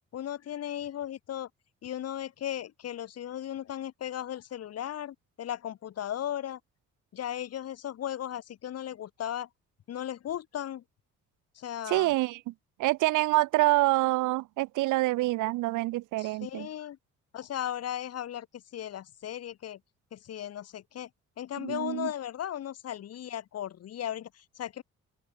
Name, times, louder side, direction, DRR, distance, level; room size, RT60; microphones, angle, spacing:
voice 1, 0.1-1.5 1.8-6.6 7.1-9.5 9.9-10.8 11.6-12.1 16.2-17.0 17.3-18.5 18.7-19.8 20.1-21.1 21.4-24.8, left 11 dB, 55° left, 1.0 m, -36 dB
voice 2, 11.9-12.5 12.8-16.7 21.6-22.1, right 19 dB, 90° right, 0.7 m, -26 dB
open air
cardioid pair, 90°, 30 cm